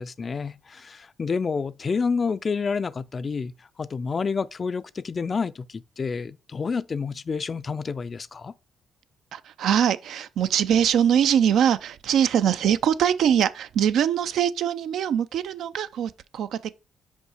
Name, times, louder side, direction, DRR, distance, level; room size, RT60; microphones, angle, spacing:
voice 1, 0.0-3.5 3.8-8.5, left 5 dB, 35° left, 0.3 m, -29 dB
voice 2, 9.3-16.7, right 9 dB, 75° right, 0.4 m, -22 dB
5.2 x 4.7 x 4.9 m
cardioid pair, 90°, 0 cm